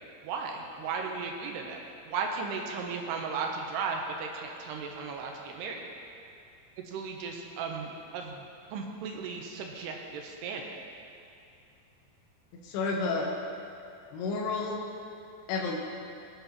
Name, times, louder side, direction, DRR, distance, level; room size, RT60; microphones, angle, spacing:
voice 1, 0.2-1.8 2.1-5.9 6.9-10.7, right 5 dB, 80° right, 2 dB, 2.8 m, -36 dB
voice 2, 12.6-13.3 14.1-14.9 15.5-15.8, left 3 dB, 75° left, -2 dB, 2.9 m, -30 dB
21.5 x 7.9 x 3.0 m, 2.6 s
omnidirectional pair, 5.1 m